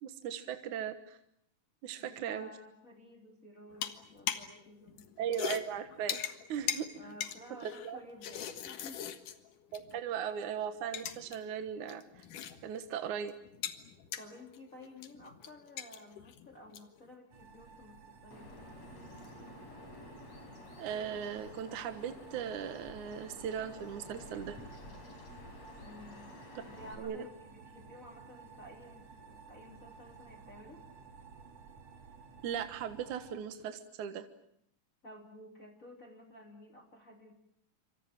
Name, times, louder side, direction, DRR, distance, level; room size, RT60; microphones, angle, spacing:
voice 1, 0.0-1.2 1.8-2.5 5.2-6.2 6.5-6.9 7.6-8.0 9.7-12.0 12.6-13.3 20.8-24.6 27.0-27.2 32.4-34.2, right 8 dB, 70° right, 9 dB, 2.8 m, -38 dB
voice 2, 2.0-5.1 6.9-9.2 14.2-18.5 25.8-26.3 26.6-30.8 35.0-37.3, left 1 dB, 25° left, 2 dB, 3.4 m, -53 dB
sound 1, 3.7-4.6 4.9-10.0 10.3-10.4 10.8-11.4 11.6-12.9 13.1-17.0, left 9 dB, 75° left, 3.1 m, -41 dB
sound 2, 17.3-33.3, right 5 dB, 55° right, 3.3 m, -55 dB
Bird vocalization bird call bird song, 18.3-26.9, left 2 dB, 55° left, 6.3 m, -51 dB
27.5 x 25.5 x 7.4 m, 0.72 s
omnidirectional pair, 3.7 m